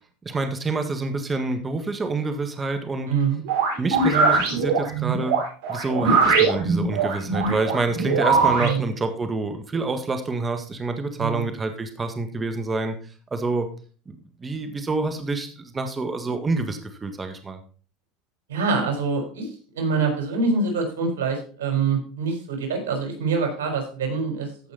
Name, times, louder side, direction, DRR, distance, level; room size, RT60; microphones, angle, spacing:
voice 1, 0.2-3.1 3.8-5.4 5.7-13.0 13.3-13.7 14.1-17.6, right 3 dB, 20° right, 7 dB, 1.7 m, -27 dB
voice 2, 3.1-3.4 8.6-8.9 11.2-11.5 18.5-24.7, right 4 dB, 90° right, 3 dB, 4.1 m, -25 dB
sound 1, 3.5-8.7, right 4 dB, 70° right, 5.1 m, -21 dB
14.5 x 5.6 x 4.1 m, 0.39 s
supercardioid pair, 105°, 0 cm